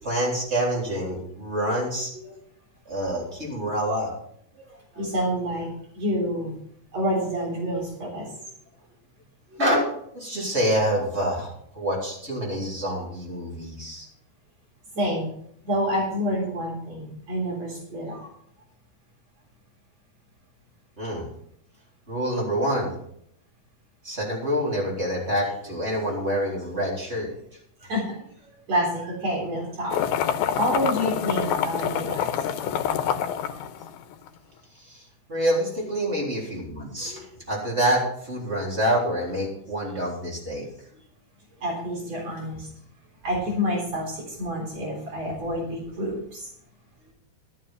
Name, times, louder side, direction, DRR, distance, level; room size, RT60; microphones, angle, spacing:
voice 1, 0.0-2.4 2.9-4.1 4.6-5.1 9.5-14.1 21.0-21.3 22.1-22.9 24.0-27.3 32.9-33.0 34.8-40.7, equal, 15° right, -4 dB, 3.6 m, -27 dB
voice 2, 5.0-6.6 6.9-8.3 14.9-15.3 15.6-18.3 27.8-28.2 28.7-30.0 30.6-32.4 41.6-42.7 43.2-46.5, equal, 45° right, -3 dB, 4.9 m, -28 dB
sound 1, 29.9-34.3, left 9 dB, 85° left, 2.7 m, -26 dB
12.0 x 8.9 x 5.6 m, 0.69 s
omnidirectional pair, 4.4 m